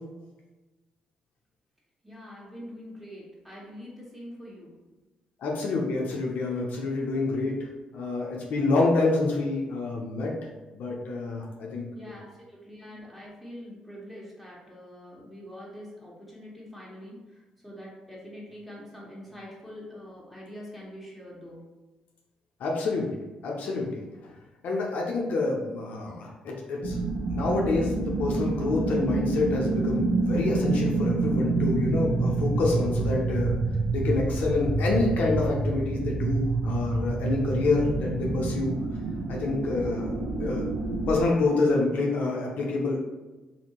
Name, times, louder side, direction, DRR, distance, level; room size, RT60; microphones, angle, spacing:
voice 1, 2.0-4.7 11.9-21.6, equal, 5° right, -5 dB, 1.2 m, -44 dB
voice 2, 5.4-7.6 7.9-10.3 10.7-12.1 22.6-23.2 23.4-24.3 24.6-27.0 27.3-33.5 33.9-38.7 39.3-40.1 40.4-40.7 41.1-43.0, left 3 dB, 70° left, -1 dB, 0.6 m, -27 dB
sound 1, 26.8-41.2, right 3 dB, 70° right, 0.5 m, -28 dB
2.8 x 2.6 x 2.9 m, 1.2 s
supercardioid pair, 55°, 3 cm